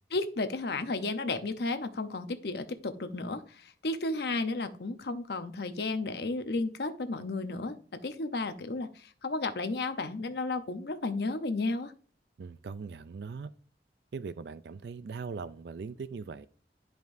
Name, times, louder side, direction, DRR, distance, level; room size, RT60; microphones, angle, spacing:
voice 1, 0.1-11.9, left 3 dB, 65° left, 0.8 m, -33 dB
voice 2, 12.4-13.5 14.1-16.5, right 5 dB, 70° right, 0.4 m, -40 dB
11.0 x 5.2 x 2.6 m
head